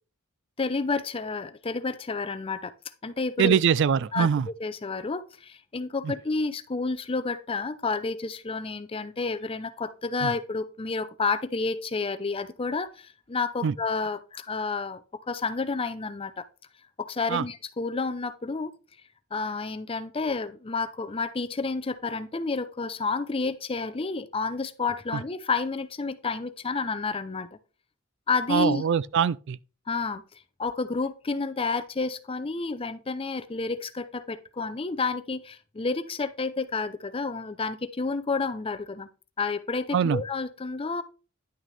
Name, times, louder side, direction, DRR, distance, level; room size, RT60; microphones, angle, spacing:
voice 1, 0.6-2.7 3.0-3.6 4.1-4.3 4.6-15.0 15.3-16.4 17.0-18.7 19.3-27.5 28.3-28.8 29.9-30.2 30.6-39.1 39.4-41.0, left 4 dB, 25° left, 0.5 m, -30 dB
voice 2, 3.4-4.5 6.0-6.1 10.2-10.3 13.6-13.7 17.3-17.4 25.1-25.2 28.5-29.6 39.9-40.2, right 7 dB, 55° right, 0.3 m, -23 dB
10.5 x 6.2 x 3.3 m
head